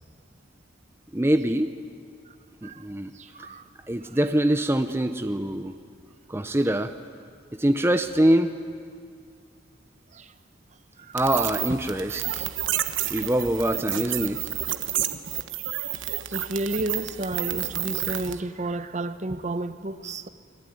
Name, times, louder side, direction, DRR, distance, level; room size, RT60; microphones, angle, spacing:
voice 1, 1.1-1.7 2.6-3.1 3.4-3.5 3.9-5.7 6.3-6.9 7.5-8.5 11.1-12.5 13.1-14.5, right 1 dB, 10° right, 0.7 m, -24 dB
voice 2, 3.1-3.7 10.1-10.3 11.0-11.2 13.1-13.3 15.6-15.8 16.3-20.3, right 2 dB, 35° right, 0.9 m, -32 dB
sound 1, 11.2-18.4, right 12 dB, 75° right, 1.2 m, -30 dB
29.5 x 20.5 x 9.5 m
head